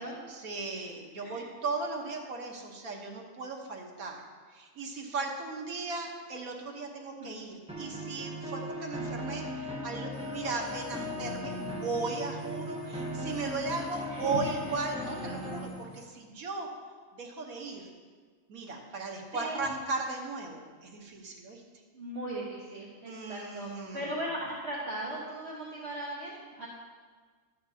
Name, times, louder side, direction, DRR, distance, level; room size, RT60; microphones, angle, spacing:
voice 1, 0.0-4.2 4.5-16.7 17.1-17.9 18.5-21.6 23.1-24.2, right 3 dB, 80° right, 0 dB, 1.6 m, -37 dB
voice 2, 7.1-7.4 10.5-10.6 14.1-14.7 19.3-19.6 21.9-26.7, right 1 dB, 50° right, -6 dB, 1.4 m, -38 dB
sound 1, 7.7-15.7, left 1 dB, 5° right, 0.7 m, -38 dB
sound 2, 10.1-16.1, left 3 dB, 70° left, 1.6 m, -51 dB
12.0 x 8.6 x 2.8 m, 1.5 s
omnidirectional pair, 1.5 m